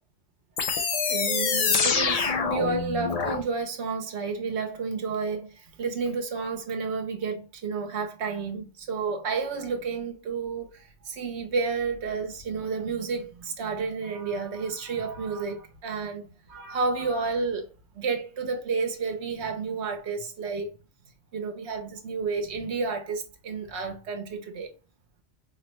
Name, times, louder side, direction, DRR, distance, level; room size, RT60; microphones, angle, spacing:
sound 1, 0.6-3.4, left 5 dB, 55° left, 0.4 m, -25 dB
voice 1, 0.6-17.7 17.9-20.7 21.3-24.7, right 4 dB, 70° right, 1.0 m, -31 dB
4.6 x 2.1 x 2.9 m
omnidirectional pair, 1.2 m